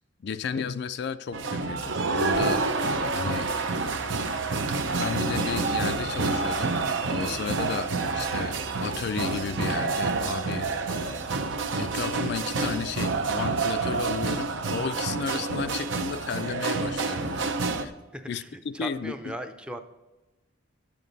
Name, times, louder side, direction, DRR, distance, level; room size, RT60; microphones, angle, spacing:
voice 1, 0.2-2.7 3.1-3.5 4.9-6.7 7.1-11.2 11.8-17.6 17.8-17.9 18.3-19.1, left 6 dB, 55° left, 11 dB, 0.4 m, -33 dB
sound 1, 1.3-17.9, right 3 dB, 70° right, 0.7 m, -28 dB
voice 2, 18.1-19.8, equal, 5° right, 7 dB, 0.5 m, -38 dB
10.0 x 8.4 x 4.0 m, 1.1 s
head